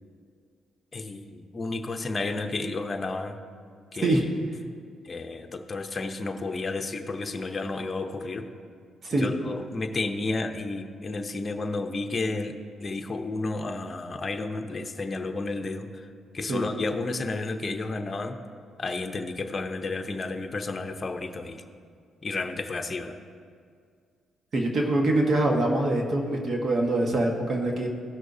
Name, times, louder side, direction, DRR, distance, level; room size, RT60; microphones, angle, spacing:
voice 1, 0.9-3.4 3.9-4.2 5.0-8.5 9.1-16.1 16.3-18.4 18.8-21.6 22.2-23.2, left 3 dB, 30° left, 5 dB, 0.7 m, -32 dB
voice 2, 24.5-27.9, right 2 dB, 50° right, 1 dB, 1.3 m, -24 dB
16.0 x 6.3 x 2.7 m, 2.1 s
cardioid pair, 90°, 0 cm